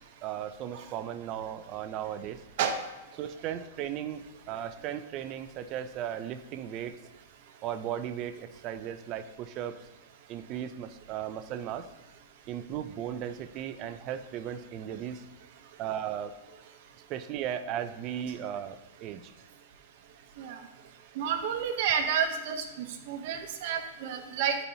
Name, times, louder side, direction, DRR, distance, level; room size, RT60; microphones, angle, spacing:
voice 1, 0.2-2.4 3.2-7.0 7.6-9.8 10.3-11.9 12.5-15.2 15.8-16.3 17.1-19.3, right 10 dB, 30° right, 10 dB, 0.3 m, -36 dB
voice 2, 21.2-24.6, right 7 dB, 45° right, 5 dB, 0.7 m, -30 dB
10.0 x 4.0 x 2.7 m, 1.0 s
supercardioid pair, 165°, 0 cm